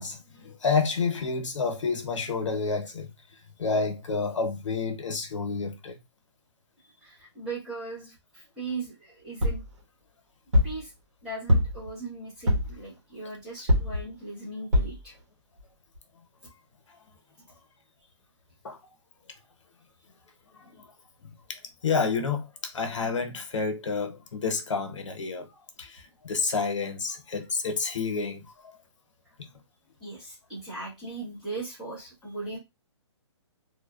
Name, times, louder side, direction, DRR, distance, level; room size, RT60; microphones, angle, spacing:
voice 1, 0.0-3.1 3.6-6.0 18.6-18.8 20.5-20.8 21.2-25.5 25.8-28.8, left 4 dB, 85° left, 0.7 m, -29 dB
voice 2, 6.8-9.6 10.6-10.9 11.2-15.1 30.0-32.6, right 3 dB, 5° right, 0.4 m, -38 dB
sound 1, 9.4-9.7 10.5-10.8 11.5-11.9 12.5-12.8 13.7-14.0 14.7-15.0 15.6-15.7 15.9-16.0, left 1 dB, 75° right, 1.1 m, -23 dB
2.6 x 2.2 x 2.2 m
hypercardioid pair, 170°, 15 cm